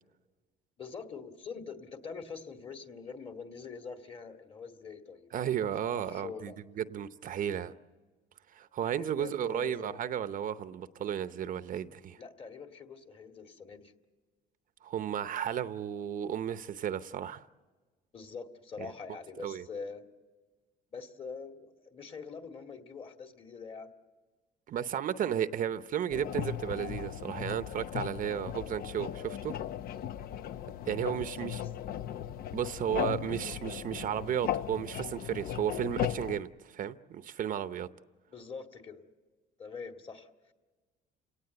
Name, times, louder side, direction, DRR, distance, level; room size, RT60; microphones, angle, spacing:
voice 1, 0.8-6.5 8.9-10.0 12.2-13.9 18.1-20.0 20.9-23.9 30.9-31.7 33.3-34.0 38.3-39.1 39.6-40.5, left 5 dB, 35° left, 2.2 m, -45 dB
voice 2, 5.3-7.7 8.5-12.2 14.8-17.4 19.4-19.6 24.7-29.5 30.9-31.6 32.5-37.9, right 9 dB, 55° right, 0.8 m, -34 dB
sound 1, 26.1-36.4, left 10 dB, 60° left, 0.7 m, -37 dB
29.5 x 18.0 x 7.9 m
cardioid pair, 110°, 17 cm